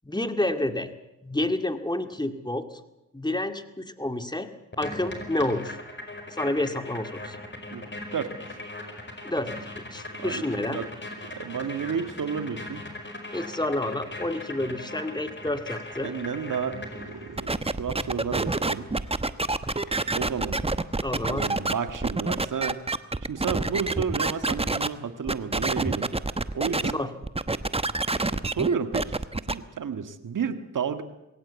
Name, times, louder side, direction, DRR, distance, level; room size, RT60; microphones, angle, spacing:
voice 1, 0.0-0.9 1.2-2.8 3.1-4.5 4.8-5.8 6.3-7.4 9.2-9.6 9.9-10.8 13.3-16.1 21.0-21.5 26.9-27.1, left 1 dB, 15° left, 8 dB, 2.1 m, -29 dB
sound 1, 4.7-17.5, left 2 dB, 35° left, 5.0 m, -39 dB
voice 2, 8.1-8.6 10.2-10.9 11.3-12.8 16.0-18.9 20.1-20.6 21.2-22.8 23.3-26.1 26.5-27.0 28.2-29.2 29.5-31.0, right 6 dB, 75° right, 9 dB, 1.7 m, -31 dB
sound 2, 15.5-21.7, left 2 dB, 70° left, 3.5 m, -52 dB
sound 3, 17.4-24.9 25.3-26.9 27.2-29.5, right 2 dB, 20° right, 1.0 m, -27 dB
21.5 x 17.5 x 8.2 m, 0.94 s
cardioid pair, 45°, 32 cm